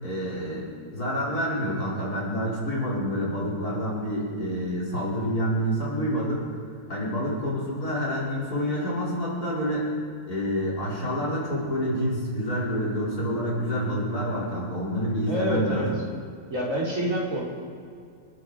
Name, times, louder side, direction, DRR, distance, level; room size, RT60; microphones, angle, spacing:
voice 1, 0.0-6.4 6.9-9.9 10.3-15.9, equal, 45° left, -5 dB, 4.9 m, -28 dB
voice 2, 15.3-15.9 16.5-17.4, equal, 35° right, -4 dB, 3.8 m, -27 dB
29.5 x 10.0 x 4.9 m, 2.3 s
omnidirectional pair, 2.3 m